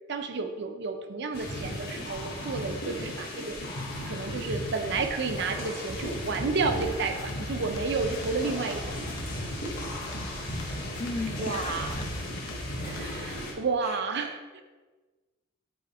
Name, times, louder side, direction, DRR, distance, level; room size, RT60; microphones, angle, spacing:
voice 1, 0.1-3.6 4.0-9.1 11.3-12.0 12.8-14.6, right 4 dB, 55° right, 7 dB, 0.5 m, -31 dB
sound 1, 1.3-13.5, left 1 dB, 45° left, 1.5 m, -36 dB
sound 2, 5.9-13.4, left 1 dB, 75° left, 0.7 m, -41 dB
voice 2, 11.0-12.4 13.8-14.0, left 3 dB, 30° left, 6 dB, 0.4 m, -37 dB
7.8 x 3.1 x 4.3 m, 1.3 s
head